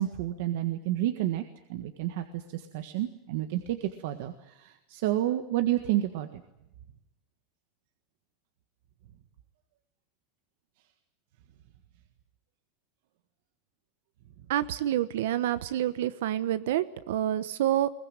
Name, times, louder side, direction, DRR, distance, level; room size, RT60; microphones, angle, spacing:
voice 1, 0.0-1.4 1.7-6.4, right 13 dB, 60° right, 7 dB, 1.6 m, -30 dB
voice 2, 14.5-17.9, right 12 dB, 80° right, 13 dB, 1.2 m, -28 dB
22.0 x 20.0 x 9.0 m, 0.85 s
supercardioid pair, 180°, 0 cm